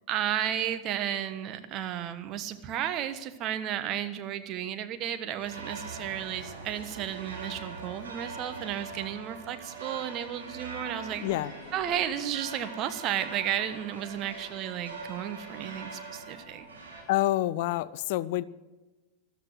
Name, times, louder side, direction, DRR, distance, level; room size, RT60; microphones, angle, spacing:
voice 1, 0.1-11.2 11.7-16.7, right 10 dB, 35° right, 9 dB, 1.3 m, -33 dB
sound 1, 5.4-17.0, right 4 dB, 70° right, 4.0 m, -42 dB
sound 2, 11.0-17.5, left 3 dB, 20° left, 5.6 m, -52 dB
voice 2, 11.2-11.5 17.1-18.4, left 15 dB, 50° left, 20 dB, 0.4 m, -27 dB
14.0 x 13.0 x 7.7 m, 1.2 s
figure-of-eight pair, 90°, 0 cm